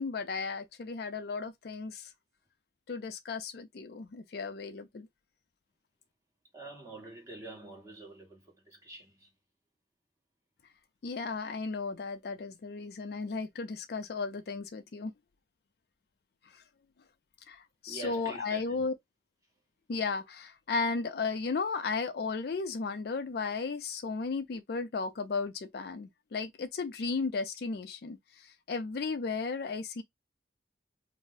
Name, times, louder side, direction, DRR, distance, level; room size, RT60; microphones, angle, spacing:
voice 1, 0.0-2.1 2.9-5.1 11.0-15.1 17.5-18.9 19.9-28.2 28.7-30.0, left 4 dB, 55° left, 0.4 m, -35 dB
voice 2, 6.5-9.3 17.9-18.9, right 3 dB, 15° right, 1.1 m, -46 dB
2.6 x 2.0 x 3.8 m
head